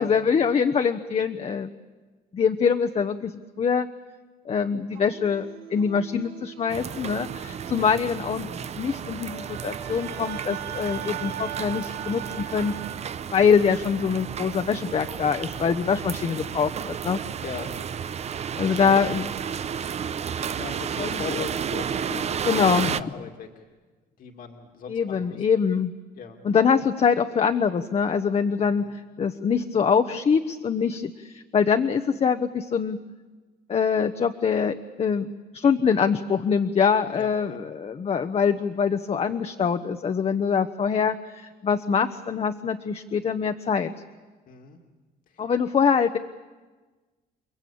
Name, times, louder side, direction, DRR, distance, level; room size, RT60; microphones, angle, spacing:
voice 1, 0.0-1.7 2.3-3.3 3.6-3.9 4.5-8.5 8.8-12.7 13.3-17.2 18.6-19.2 21.0-21.4 22.4-22.9 24.9-25.9 26.4-33.0 33.7-35.3 35.5-43.9 45.4-46.2, left 6 dB, 35° left, 8 dB, 1.1 m, -24 dB
sound 1, 4.9-13.0, right 11 dB, 90° right, 1.9 m, -40 dB
sound 2, 6.7-23.0, right 8 dB, 40° right, 0.8 m, -32 dB
voice 2, 17.4-17.8 18.6-19.1 20.6-23.7 24.2-25.4 26.2-26.4 28.8-29.0 37.1-37.6 44.5-44.8 45.3-45.4, left 5 dB, 55° left, 3 dB, 2.4 m, -38 dB
30.0 x 21.5 x 8.7 m, 1.3 s
cardioid pair, 110°, 17 cm